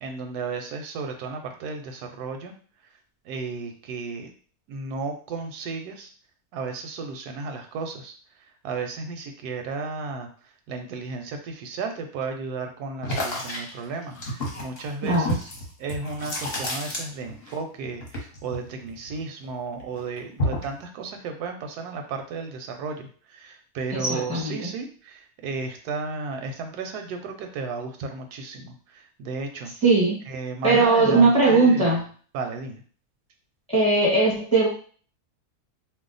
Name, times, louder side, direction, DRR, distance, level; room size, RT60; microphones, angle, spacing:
voice 1, 0.0-2.5 3.2-4.3 4.7-6.1 6.5-8.1 8.6-10.3 10.7-15.5 15.8-29.7 30.3-31.9 32.3-32.8, right 4 dB, 85° right, 5 dB, 1.1 m, -34 dB
sound 1, 13.0-17.6 17.8-19.5 19.8-20.8, equal, 45° left, 1.0 m, -31 dB
voice 2, 15.0-15.4 23.9-24.7 29.8-30.2 30.6-32.0 33.7-34.7, right 3 dB, 5° left, -4 dB, 0.8 m, -19 dB
2.7 x 2.1 x 3.8 m, 0.43 s
omnidirectional pair, 1.6 m